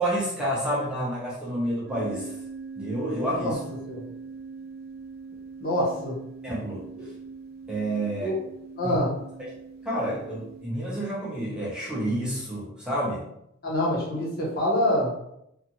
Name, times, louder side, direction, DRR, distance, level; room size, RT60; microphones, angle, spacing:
voice 1, 0.0-2.3 2.8-3.6 6.4-6.8 7.7-8.4 8.8-9.0 9.8-13.3, right 1 dB, 5° right, -7 dB, 0.6 m, -29 dB
sound 1, 1.9-10.7, right 4 dB, 45° right, 0.4 m, -42 dB
voice 2, 5.6-6.1 8.2-8.4 8.8-9.1 13.6-15.1, left 1 dB, 45° left, -5 dB, 0.9 m, -25 dB
2.5 x 2.4 x 2.9 m, 0.80 s
head